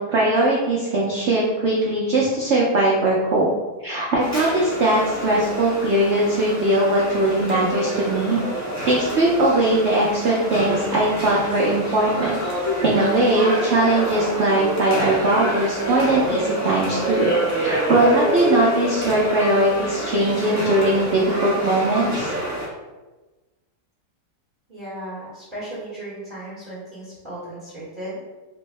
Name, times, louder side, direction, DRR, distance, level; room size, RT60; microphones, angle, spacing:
voice 1, 0.0-3.5 3.8-8.4 8.9-12.4 12.8-17.3 17.6-22.3, right 1 dB, 90° right, -4 dB, 0.6 m, -20 dB
sound 1, 4.2-22.7, right 1 dB, 15° left, 0.5 m, -27 dB
voice 2, 24.7-28.2, right 1 dB, 35° right, -9 dB, 1.0 m, -35 dB
4.4 x 2.0 x 3.2 m, 1.2 s
omnidirectional pair, 1.9 m